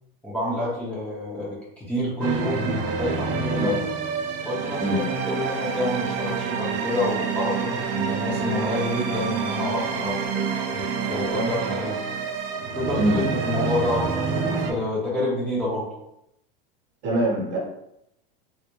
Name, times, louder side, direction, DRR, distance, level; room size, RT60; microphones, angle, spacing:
voice 1, 0.2-3.9 4.4-10.2 10.7-12.0 12.7-15.9, left 1 dB, 5° left, -8 dB, 0.7 m, -28 dB
sound 1, 2.2-14.7, right 5 dB, 75° right, 0.5 m, -27 dB
voice 2, 17.0-17.6, right 1 dB, 40° right, -2 dB, 0.9 m, -23 dB
2.3 x 2.1 x 3.0 m, 0.79 s
hypercardioid pair, 110°, 29 cm